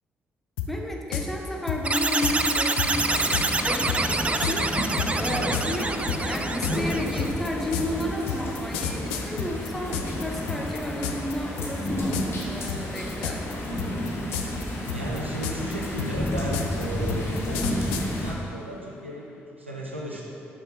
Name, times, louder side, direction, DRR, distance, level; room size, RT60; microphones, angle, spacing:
sound 1, 0.6-0.7 1.1-1.3 1.7-2.4 2.8-2.9 3.3-3.5 3.9-10.2 10.5-11.3 11.6-11.9 12.1-12.4 12.7-13.5 13.8-14.6 14.9-18.1, left 10 dB, 70° left, 0.3 m, -31 dB
voice 1, 0.7-5.9 6.3-12.2 12.5-13.6, left 1 dB, 5° left, 0 dB, 0.8 m, -32 dB
sound 2, 1.8-7.3, right 3 dB, 20° right, 0.3 m, -26 dB
sound 3, 2.9-18.3, equal, 45° left, 1.0 m, -31 dB
voice 2, 5.3-5.7 14.7-20.2, right 1 dB, 90° right, -3 dB, 0.5 m, -35 dB
5.8 x 4.2 x 4.1 m, 2.7 s
figure-of-eight pair, 40°, 6 cm